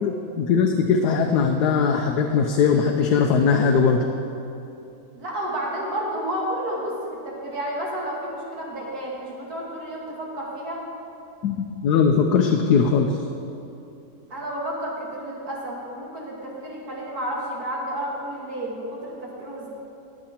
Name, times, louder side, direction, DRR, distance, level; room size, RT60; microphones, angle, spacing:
voice 1, 0.0-4.0 11.4-13.2, left 5 dB, 80° left, 4 dB, 1.2 m, -20 dB
voice 2, 5.2-10.8 14.3-19.7, right 1 dB, 65° right, -4 dB, 2.2 m, -31 dB
20.0 x 7.5 x 2.9 m, 2.8 s
omnidirectional pair, 1.7 m